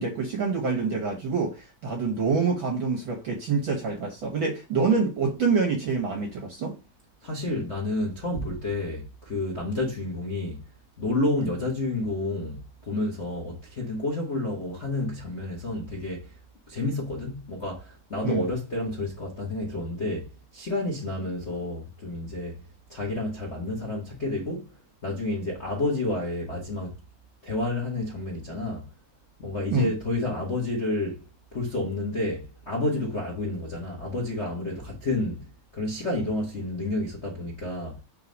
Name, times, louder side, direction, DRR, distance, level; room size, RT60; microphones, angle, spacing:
voice 1, 0.0-6.7 18.2-18.4 29.7-29.9, right 4 dB, 60° right, 1.3 m, -26 dB
voice 2, 7.2-10.6 11.0-16.3 16.7-22.6 22.9-24.7 25.0-27.0 27.4-28.9 29.4-31.2 31.5-35.5 35.7-38.0, left 2 dB, 55° left, 0.7 m, -30 dB
5.6 x 3.2 x 5.3 m
omnidirectional pair, 3.7 m